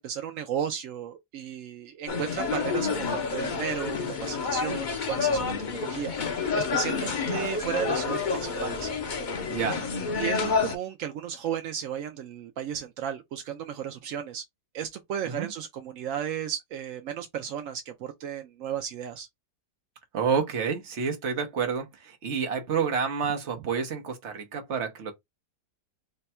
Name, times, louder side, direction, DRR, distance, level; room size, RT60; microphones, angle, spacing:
voice 1, 0.0-8.9 10.1-14.4 14.7-19.3, right 9 dB, 70° right, 0.8 m, -34 dB
sound 1, 2.1-10.7, left 5 dB, 85° left, 0.4 m, -29 dB
voice 2, 9.5-9.9 15.2-15.5 20.1-25.1, right 6 dB, 50° right, 1.1 m, -29 dB
3.4 x 2.2 x 4.1 m
omnidirectional pair, 1.8 m